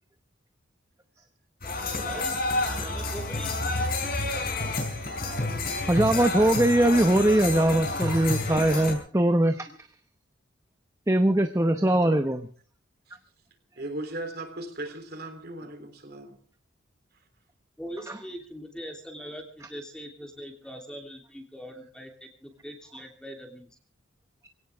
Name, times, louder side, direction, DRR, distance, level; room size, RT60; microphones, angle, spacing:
sound 1, 1.6-8.9, left 2 dB, 45° left, 5.0 m, -29 dB
voice 1, 1.7-2.4 2.7-3.5 17.8-22.1 22.4-23.7, equal, 5° left, 3.0 m, -41 dB
voice 2, 5.9-9.9 11.1-12.5 18.1-18.2, right 1 dB, 15° right, 0.8 m, -22 dB
voice 3, 13.8-16.4, right 2 dB, 50° right, 3.3 m, -37 dB
22.0 x 17.5 x 3.5 m
head